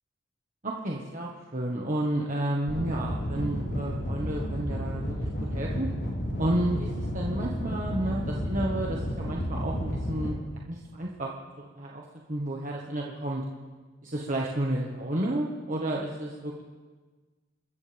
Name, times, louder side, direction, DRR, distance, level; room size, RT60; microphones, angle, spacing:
voice 1, 0.6-5.9 6.4-10.4 10.7-11.3 11.6-12.0 12.3-13.4 14.0-16.6, right 1 dB, 45° right, -2 dB, 1.5 m, -31 dB
sound 1, 2.7-10.3, equal, 80° left, 3.5 m, -31 dB
29.5 x 14.0 x 3.5 m, 1.4 s
head